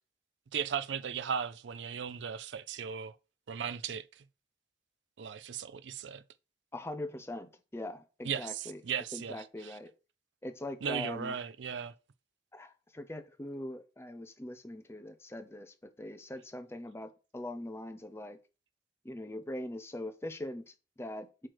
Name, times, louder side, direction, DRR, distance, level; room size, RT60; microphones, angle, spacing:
voice 1, 0.5-3.2 3.5-4.2 5.2-6.2 8.2-9.8 10.8-11.9, right 7 dB, 85° right, 0.4 m, -37 dB
voice 2, 6.7-8.8 9.1-9.9 10.4-11.3 12.5-18.4 19.0-21.5, left 1 dB, 15° left, 0.6 m, -42 dB
7.7 x 3.2 x 4.6 m
head